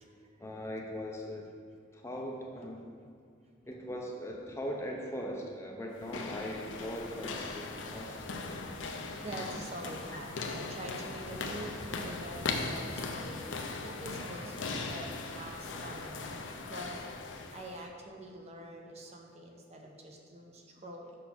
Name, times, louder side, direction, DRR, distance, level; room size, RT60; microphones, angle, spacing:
voice 1, 0.4-1.5 1.9-2.9 3.7-8.3, equal, 15° left, 0 dB, 0.5 m, -40 dB
sound 1, 5.9-17.9, left 3 dB, 80° left, 0.6 m, -39 dB
voice 2, 8.9-21.2, right 1 dB, 35° right, 2 dB, 0.7 m, -45 dB
6.4 x 5.7 x 4.3 m, 2.2 s
head